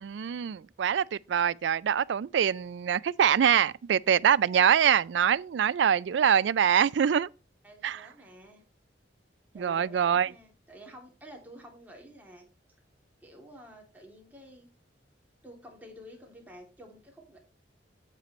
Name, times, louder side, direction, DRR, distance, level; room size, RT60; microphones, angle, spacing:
voice 1, 0.0-7.3 7.8-8.0 9.5-10.3, right 8 dB, 80° right, 0.4 m, -24 dB
voice 2, 7.6-8.6 9.5-12.5 13.2-14.7 15.4-17.4, equal, 10° right, 2.8 m, -50 dB
9.2 x 8.1 x 3.1 m
head